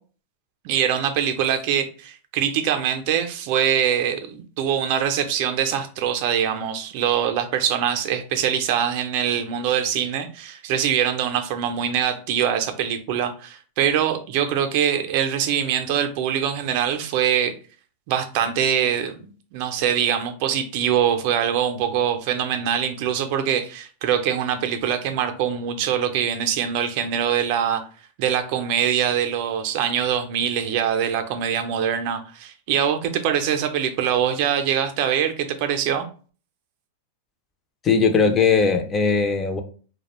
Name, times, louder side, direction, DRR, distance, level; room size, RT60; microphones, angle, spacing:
voice 1, 0.6-17.5 18.1-27.8 28.2-36.1, right 9 dB, 55° right, 0.4 m, -23 dB
voice 2, 37.8-39.6, left 5 dB, 25° left, 0.4 m, -19 dB
2.3 x 2.1 x 2.9 m
hypercardioid pair, 125°, 0 cm